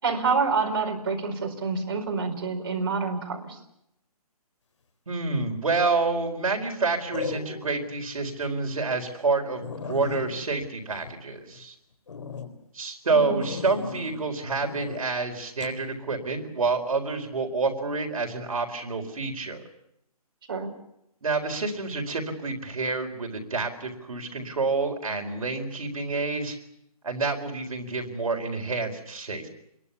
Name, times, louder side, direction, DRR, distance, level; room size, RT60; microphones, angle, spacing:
voice 1, 0.0-3.5 13.1-13.4 20.5-20.7, right 4 dB, 35° right, 0 dB, 4.8 m, -27 dB
voice 2, 5.1-11.7 12.7-19.6 21.2-26.6 27.0-29.5, right 3 dB, 60° right, 4 dB, 4.5 m, -28 dB
sound 1, 5.5-5.9 7.1-7.9 8.3-8.4 8.9-9.0 9.3-9.4 9.6-11.6 12.1-12.5 13.4-14.2 14.6-15.0 15.6-15.8, left 5 dB, 50° left, 4.0 m, -37 dB
27.5 x 22.5 x 7.1 m, 0.80 s
hypercardioid pair, 180°, 20 cm